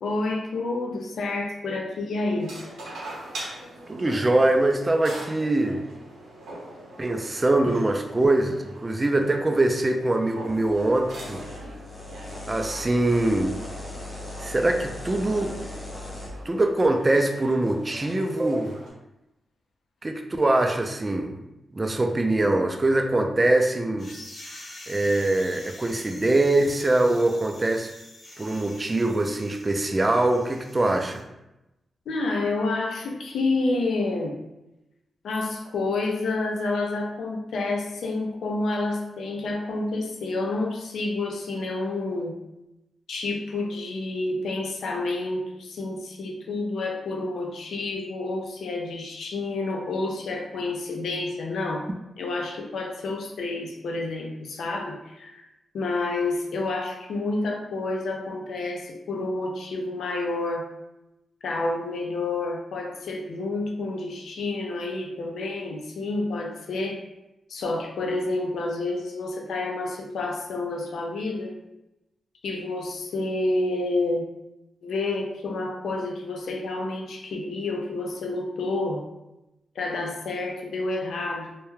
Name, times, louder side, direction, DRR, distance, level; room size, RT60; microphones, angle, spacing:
voice 1, 0.0-2.5 32.1-34.4 35.2-42.4 43.1-51.9 52.2-55.4 55.7-60.7 61.4-67.0 67.5-71.6 72.4-74.3 74.8-79.1 79.8-81.6, left 2 dB, 80° left, 1 dB, 0.4 m, -29 dB
sound 1, 2.4-18.9, right 1 dB, 90° right, 0.6 m, -42 dB
voice 2, 3.9-5.8 7.0-11.4 12.5-13.6 14.4-15.5 16.5-18.7 20.0-21.4 21.7-24.1 24.9-27.9 28.4-31.2, right 2 dB, 30° right, 5 dB, 0.4 m, -23 dB
sound 2, 10.5-16.3, left 2 dB, 25° left, 0.7 m, -39 dB
sound 3, 24.0-31.2, left 1 dB, 55° left, 1.0 m, -46 dB
2.2 x 2.2 x 3.1 m, 0.93 s
supercardioid pair, 50°, 0 cm